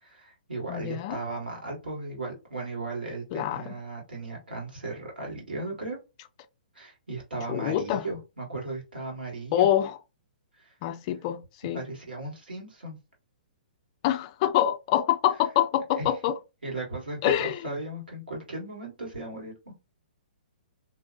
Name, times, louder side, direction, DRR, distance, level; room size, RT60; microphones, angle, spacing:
voice 1, 0.0-6.0 6.7-9.7 10.6-10.7 11.7-13.0 16.0-16.1 16.6-19.7, right 2 dB, 85° right, 1.5 m, -36 dB
voice 2, 0.7-1.2 3.3-3.8 7.5-8.0 9.5-10.0 10.8-11.8 14.0-16.4 17.2-17.6, left 11 dB, 40° left, 0.4 m, -26 dB
2.6 x 2.0 x 2.6 m
figure-of-eight pair, 125°, 5 cm